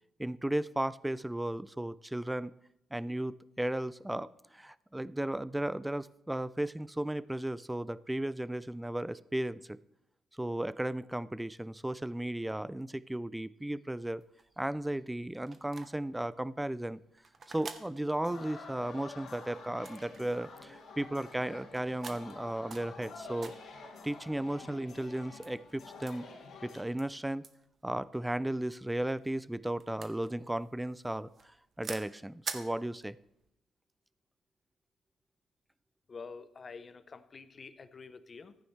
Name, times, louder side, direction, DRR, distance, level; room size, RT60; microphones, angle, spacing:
voice 1, 0.2-2.5 2.9-9.8 10.4-14.2 14.6-17.0 17.5-23.5 24.0-26.2 26.6-27.4 27.8-33.2, right 1 dB, 10° right, 19 dB, 0.3 m, -35 dB
sound 1, 14.2-33.5, right 5 dB, 45° right, 0.9 m, -49 dB
sound 2, 18.1-26.8, left 4 dB, 65° left, 2.4 m, -49 dB
voice 2, 36.1-38.6, left 4 dB, 40° left, 13 dB, 0.7 m, -48 dB
14.0 x 9.3 x 3.2 m, 0.82 s
cardioid pair, 90°, 0 cm